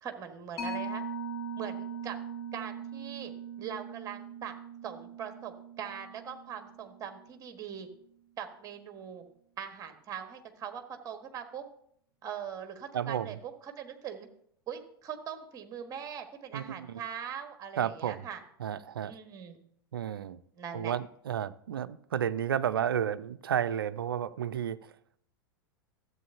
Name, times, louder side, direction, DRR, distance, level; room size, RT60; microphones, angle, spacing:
voice 1, 0.0-1.0 1.6-2.2 2.5-3.3 3.6-4.5 4.8-7.9 8.4-9.2 9.6-11.7 12.2-14.3 14.7-18.4 19.0-19.6 20.6-20.9, right 8 dB, 30° right, 6 dB, 1.4 m, -41 dB
Mallet percussion, 0.6-7.6, right 4 dB, 25° left, 2.6 m, -40 dB
voice 2, 12.9-13.4 16.5-17.0 17.8-18.3 18.6-19.1 19.9-20.4 20.7-24.9, right 9 dB, 70° right, 14 dB, 0.5 m, -32 dB
13.5 x 7.8 x 2.8 m, 0.65 s
figure-of-eight pair, 90°, 12 cm